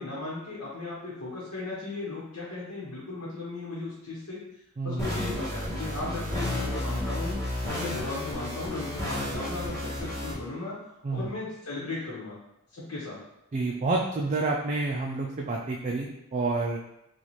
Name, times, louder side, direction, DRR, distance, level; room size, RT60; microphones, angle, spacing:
voice 1, 0.0-4.4 4.8-7.4 7.6-10.8 11.1-12.4 12.7-13.2, left 2 dB, 85° left, -8 dB, 1.0 m, -36 dB
voice 2, 4.8-5.1 11.0-11.3 13.5-16.8, right 3 dB, 35° right, -1 dB, 0.3 m, -29 dB
sound 1, 5.0-10.3, left 1 dB, 15° left, 1.1 m, -32 dB
4.0 x 2.4 x 3.1 m, 0.86 s
head